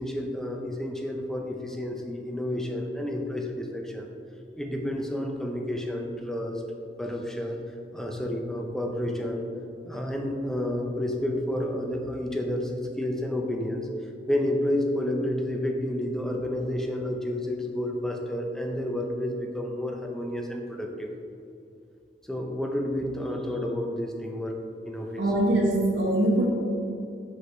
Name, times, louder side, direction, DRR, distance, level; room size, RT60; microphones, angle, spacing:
voice 1, 0.0-4.1 4.6-6.6 7.0-7.6 7.9-9.5 9.9-13.9 14.3-21.1 22.3-24.5 24.8-25.2, left 1 dB, 5° left, 1 dB, 0.5 m, -30 dB
voice 2, 25.2-26.5, right 1 dB, 85° right, -2 dB, 1.2 m, -23 dB
6.1 x 5.3 x 3.1 m, 2.7 s
head